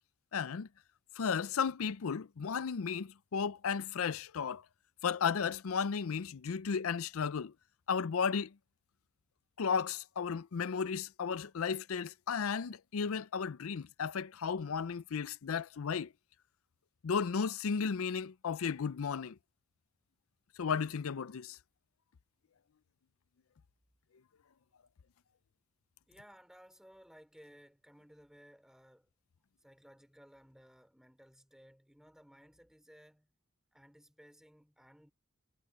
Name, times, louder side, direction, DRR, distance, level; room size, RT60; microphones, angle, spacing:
voice 1, 0.3-0.7 1.2-4.6 5.0-7.5 7.9-8.5 9.6-16.1 17.0-19.4 20.6-21.6, left 6 dB, 75° left, 0.5 m, -34 dB
voice 2, 26.1-29.1 29.6-33.3 33.7-35.1, equal, ahead, 3.4 m, -59 dB
head